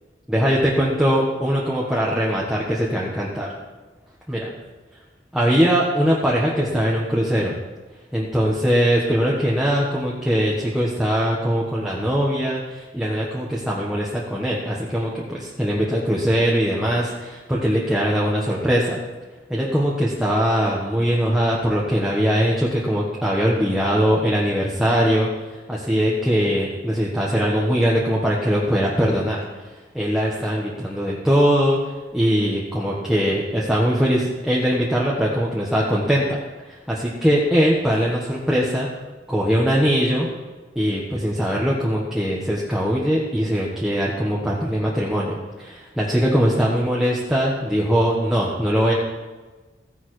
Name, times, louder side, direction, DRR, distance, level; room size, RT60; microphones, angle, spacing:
voice 1, 0.3-3.5 4.3-4.5 5.3-7.5 8.1-19.0 19.5-29.4 29.9-31.8 32.1-36.4 36.7-38.9 39.3-40.3 40.7-48.9, equal, 5° right, -5 dB, 1.3 m, -21 dB
15.5 x 10.5 x 3.2 m, 1.3 s
head